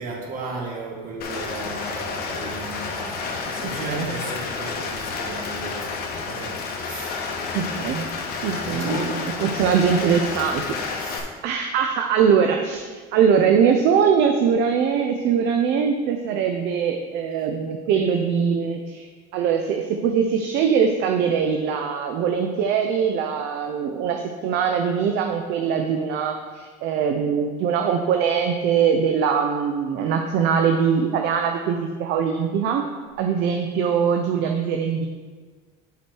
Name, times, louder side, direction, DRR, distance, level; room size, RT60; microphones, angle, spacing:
voice 1, 0.0-7.3 8.7-9.3 11.0-11.3, right 2 dB, 45° right, -1 dB, 2.0 m, -34 dB
Rain, 1.2-11.2, left 4 dB, 50° left, 1.3 m, -30 dB
voice 2, 7.5-8.0 8.4-9.0 9.4-11.1 11.4-19.1 19.3-32.9 33.2-35.1, right 7 dB, 60° right, 5 dB, 0.7 m, -22 dB
8.0 x 5.1 x 4.6 m, 1.5 s
supercardioid pair, 105°, 20 cm